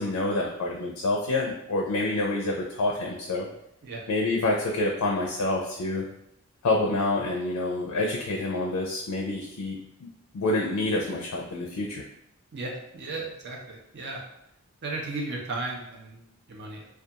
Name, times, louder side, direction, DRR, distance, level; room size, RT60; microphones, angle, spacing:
voice 1, 0.0-3.5 4.1-6.1 6.6-10.1 10.3-12.0, left 2 dB, 80° left, -1 dB, 0.4 m, -27 dB
voice 2, 12.5-14.2 14.8-16.9, right 2 dB, 50° right, 0 dB, 0.5 m, -35 dB
2.3 x 2.3 x 2.8 m, 0.78 s
head